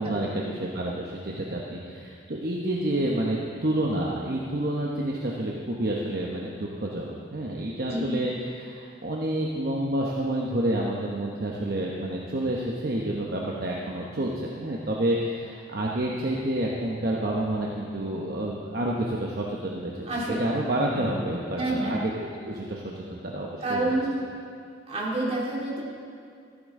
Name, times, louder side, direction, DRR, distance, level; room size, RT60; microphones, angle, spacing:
voice 1, 0.0-20.1 20.4-22.1 22.5-23.9, right 1 dB, 50° right, -3 dB, 0.9 m, -29 dB
voice 2, 20.1-20.4 20.9-21.1 21.5-21.9 23.6-24.1 24.9-25.8, right 2 dB, 30° right, -5 dB, 2.4 m, -28 dB
14.0 x 12.0 x 3.7 m, 2.3 s
head